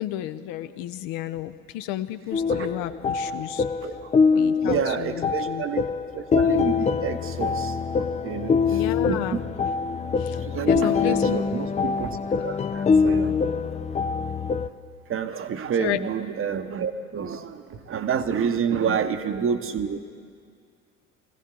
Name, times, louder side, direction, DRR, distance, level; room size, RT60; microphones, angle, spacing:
voice 1, 0.0-3.6 4.3-5.6 8.7-9.4 10.2-11.4 12.3-12.4 15.8-16.0 18.8-19.0, left 13 dB, 55° left, 11 dB, 0.8 m, -32 dB
sound 1, 2.3-14.7, left 5 dB, 15° left, 0.5 m, -24 dB
voice 2, 4.6-5.8 6.1-7.7 8.2-8.6 9.1-9.4 10.5-12.2 12.4-13.4 15.1-17.6 17.9-20.0, right 7 dB, 30° right, 10 dB, 1.0 m, -28 dB
21.0 x 15.5 x 3.8 m, 2.2 s
figure-of-eight pair, 65°, 41 cm